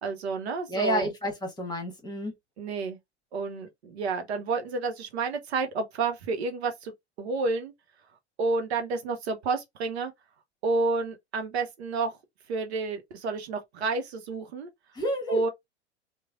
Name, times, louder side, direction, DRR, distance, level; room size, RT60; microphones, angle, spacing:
voice 1, 0.0-1.1 2.6-3.0 3.3-6.9 7.2-7.7 8.4-10.1 10.6-12.1 12.5-14.7 15.3-15.5, right 3 dB, 70° right, 0.7 m, -30 dB
voice 2, 0.7-2.3 15.0-15.5, equal, 10° left, 1.2 m, -30 dB
3.0 x 2.1 x 2.4 m
figure-of-eight pair, 85°, 34 cm